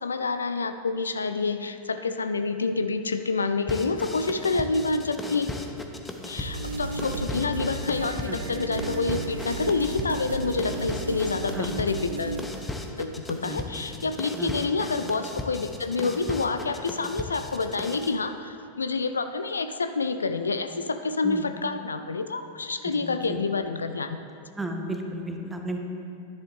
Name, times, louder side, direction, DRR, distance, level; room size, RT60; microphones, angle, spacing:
voice 1, 0.0-5.5 6.2-12.4 13.0-24.2, left 4 dB, 75° left, 9 dB, 0.4 m, -28 dB
sound 1, 3.7-18.2, left 2 dB, 10° left, 0.7 m, -37 dB
sound 2, 6.4-12.4, right 3 dB, 70° right, 0.7 m, -34 dB
voice 2, 13.3-14.1 14.4-14.5 21.2-21.4 22.8-23.4 24.6-25.8, right 1 dB, 10° right, 3 dB, 1.0 m, -34 dB
10.5 x 10.5 x 3.2 m, 2.6 s
figure-of-eight pair, 90°, 0 cm